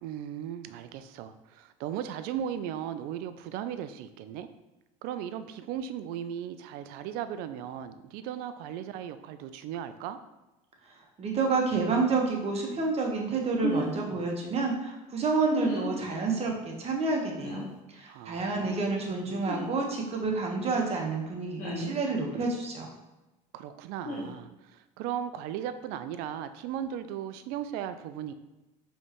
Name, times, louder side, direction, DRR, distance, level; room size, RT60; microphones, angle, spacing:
voice 1, 0.0-4.5 5.0-10.2 18.1-19.4 23.5-28.3, right 9 dB, 70° right, 11 dB, 0.4 m, -37 dB
voice 2, 11.2-17.7 17.9-22.9, right 4 dB, 40° right, 0 dB, 1.1 m, -29 dB
sound 1, 13.6-13.9 15.6-16.0 17.4-17.7 19.4-19.7 21.6-21.9 24.0-24.3, left 1 dB, 50° left, 1.4 m, -32 dB
4.4 x 3.2 x 3.0 m, 1.0 s
supercardioid pair, 85°, 16 cm